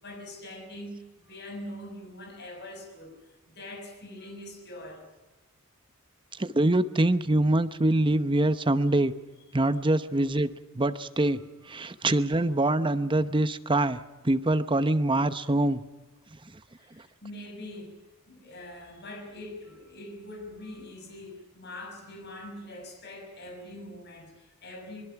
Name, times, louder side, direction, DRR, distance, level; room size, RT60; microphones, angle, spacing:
voice 1, 0.0-3.1 3.5-5.1 9.5-9.6 11.6-11.8 16.7-18.0 18.3-25.0, left 1 dB, 50° left, 6.4 m, -43 dB
voice 2, 6.4-9.1 9.5-10.5 10.8-11.4 11.7-14.0 14.2-15.8, right 1 dB, 25° right, 0.9 m, -24 dB
24.0 x 22.0 x 5.9 m
head